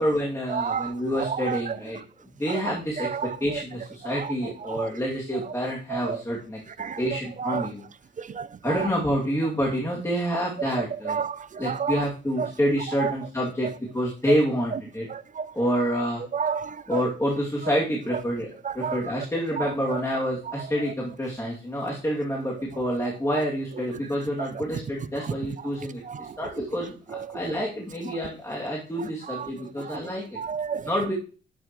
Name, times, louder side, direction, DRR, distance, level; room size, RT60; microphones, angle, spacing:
voice 1, 0.0-2.0 2.4-6.6 7.0-7.8 8.6-11.2 11.6-13.7 13.9-15.1 15.5-16.2 16.9-27.0 27.3-30.2 30.8-31.1, equal, 15° left, -4 dB, 2.7 m, -28 dB
voice 2, 0.5-0.9 5.9-6.0 6.8-7.0 7.5-7.7 8.4-8.5 11.1-11.4 11.7-11.9 12.4-12.5 15.4-15.5 16.3-17.0 18.8-19.0 30.4-30.8, right 6 dB, 40° right, 16 dB, 0.6 m, -28 dB
11.0 x 9.3 x 3.1 m, 0.38 s
cardioid pair, 100°, 20 cm